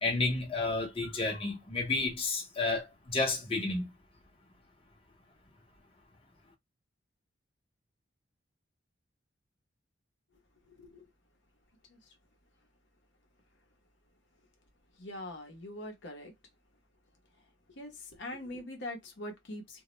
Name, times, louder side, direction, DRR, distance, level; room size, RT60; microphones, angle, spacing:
voice 1, 0.0-3.9, left 3 dB, 25° left, 0.7 m, -31 dB
voice 2, 10.7-11.1 11.9-12.2 15.0-16.3 17.7-19.8, left 1 dB, 60° left, 0.7 m, -43 dB
2.2 x 2.0 x 2.9 m
head